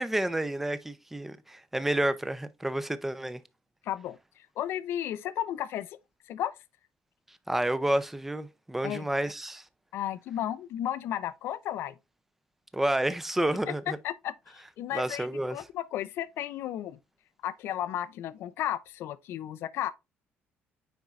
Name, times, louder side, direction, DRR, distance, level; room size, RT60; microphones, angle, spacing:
voice 1, 0.0-3.4 7.5-9.6 12.7-14.0 14.9-15.6, right 1 dB, 5° right, 0.6 m, -30 dB
voice 2, 3.8-6.0 6.3-6.6 8.8-9.1 9.9-11.9 13.7-17.0 17.4-19.9, left 11 dB, 70° left, 0.5 m, -34 dB
9.3 x 4.4 x 2.4 m
cardioid pair, 150°, 4 cm